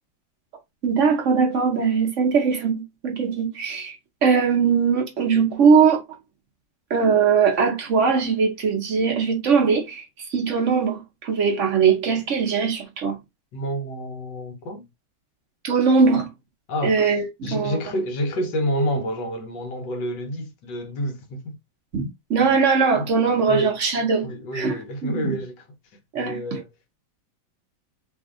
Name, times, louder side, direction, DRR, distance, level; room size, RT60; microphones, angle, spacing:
voice 1, 0.8-6.0 6.9-13.2 15.6-16.3 16.8-17.8 21.9-24.3 24.5-25.4 26.1-26.6, right 5 dB, 60° right, 0.8 m, -21 dB
voice 2, 13.5-14.9 16.7-17.0 17.4-21.6 22.9-23.7 24.2-25.7 26.1-26.7, equal, 65° left, 1.4 m, -28 dB
3.2 x 2.6 x 3.5 m
omnidirectional pair, 2.1 m